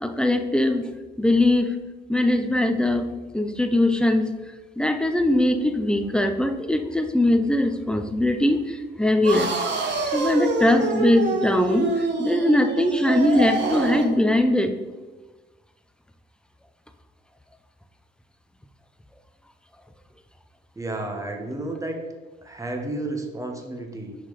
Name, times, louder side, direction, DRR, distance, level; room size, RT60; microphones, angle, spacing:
voice 1, 0.0-0.8 1.2-1.7 2.1-3.1 3.3-4.3 4.8-9.5 10.1-11.9 12.2-14.7, left 1 dB, 5° left, 7 dB, 0.6 m, -21 dB
sound 1, 9.2-14.2, right 3 dB, 65° right, 1.3 m, -26 dB
voice 2, 20.7-22.0 22.4-24.2, right 2 dB, 15° right, 3 dB, 1.2 m, -31 dB
6.2 x 5.2 x 4.0 m, 1.2 s
cardioid pair, 90°, 20 cm